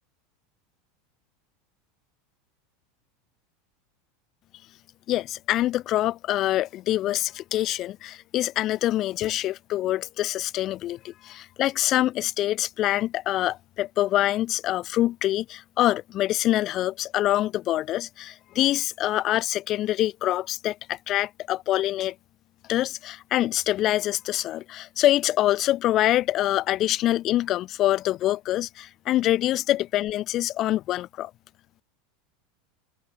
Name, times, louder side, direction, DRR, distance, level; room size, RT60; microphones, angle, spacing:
voice 1, 5.1-22.1 22.7-31.3, left 14 dB, 40° left, 0.6 m, -25 dB
figure-of-eight pair, 80°, 0 cm